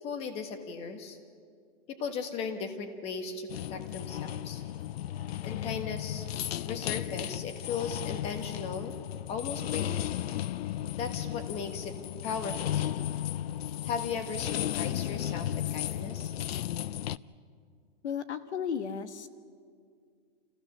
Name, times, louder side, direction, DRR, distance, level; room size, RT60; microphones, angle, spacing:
voice 1, 0.0-1.2 1.9-4.6 5.4-6.3 6.7-9.0 9.3-10.0 10.9-12.0 12.2-13.1 13.8-16.3, left 5 dB, 20° left, 8 dB, 1.2 m, -37 dB
sound 1, 3.5-17.2, left 12 dB, 65° left, 0.5 m, -34 dB
voice 2, 18.0-19.3, left 7 dB, 85° left, 11 dB, 1.4 m, -34 dB
28.5 x 15.0 x 6.8 m, 2.2 s
hypercardioid pair, 165°, 33 cm